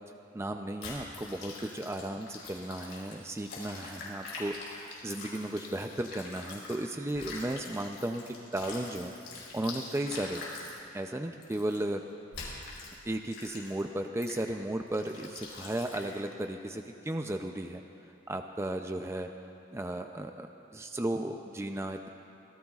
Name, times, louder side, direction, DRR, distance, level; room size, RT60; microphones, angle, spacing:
voice 1, 0.3-9.1 9.5-10.4 10.9-12.0 13.1-17.8 18.3-19.3 19.7-22.1, right 1 dB, 15° right, 5 dB, 0.5 m, -35 dB
sound 1, 0.8-6.8 7.1-10.8 11.4-11.8 12.3-12.9 13.3-13.8 14.2-14.4 14.9-16.2, left 3 dB, 65° left, 4.4 m, -44 dB
25.5 x 18.5 x 2.4 m, 2.6 s
head